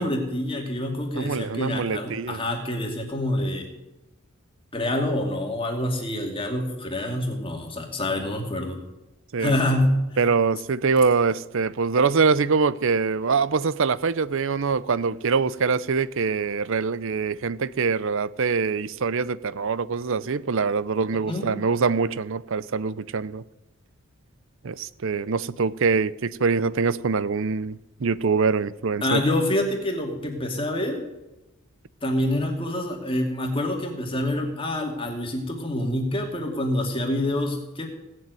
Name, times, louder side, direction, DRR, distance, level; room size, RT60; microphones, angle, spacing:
voice 1, 0.0-3.7 4.7-8.8 9.4-10.2 21.3-21.5 29.0-31.0 32.0-37.9, left 1 dB, 25° left, 2.4 m, -26 dB
voice 2, 1.1-2.4 9.3-9.6 10.2-23.4 24.6-29.2, right 5 dB, 60° right, 0.6 m, -24 dB
17.5 x 7.8 x 9.2 m
head